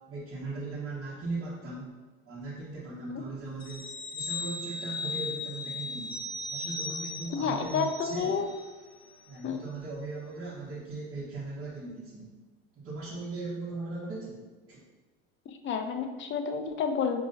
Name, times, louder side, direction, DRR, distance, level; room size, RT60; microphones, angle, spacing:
voice 1, 0.1-1.9 2.3-6.2 6.5-8.3 9.3-12.3 12.7-14.8, right 3 dB, 40° right, -8 dB, 1.2 m, -38 dB
sound 1, 3.6-8.7 9.0-9.2, left 2 dB, 55° left, 0.9 m, -37 dB
voice 2, 7.3-8.5 9.4-9.6 15.5-17.2, left 6 dB, 40° left, 6 dB, 0.5 m, -30 dB
5.3 x 2.9 x 2.7 m, 1.3 s
hypercardioid pair, 80°, 32 cm